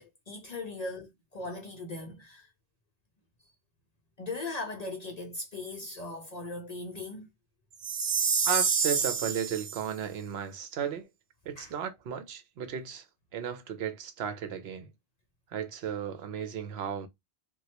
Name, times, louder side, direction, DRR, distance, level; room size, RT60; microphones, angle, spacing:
voice 1, 0.0-2.5 4.2-7.3 11.6-11.7, left 2 dB, 50° left, 0.5 m, -39 dB
Chime, 7.8-9.8, right 6 dB, 55° right, 0.4 m, -28 dB
voice 2, 8.4-11.1 11.5-13.1 13.3-14.9 15.5-17.1, right 8 dB, 70° right, 0.8 m, -34 dB
3.0 x 2.2 x 2.8 m
omnidirectional pair, 1.1 m